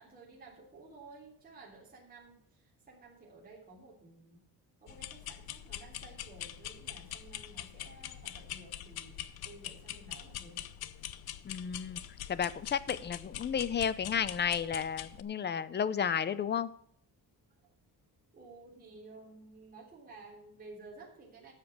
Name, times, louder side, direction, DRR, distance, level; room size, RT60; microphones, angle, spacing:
voice 1, 0.0-4.5 4.8-10.7 17.6-17.7 18.3-21.5, right 3 dB, 25° right, -4 dB, 3.5 m, -54 dB
sound 1, 4.9-15.2, left 12 dB, 85° left, 0.8 m, -44 dB
voice 2, 11.5-12.0 12.3-16.7, left 7 dB, 30° left, 16 dB, 0.6 m, -32 dB
12.5 x 7.6 x 6.1 m, 0.69 s
cardioid pair, 170°, 36 cm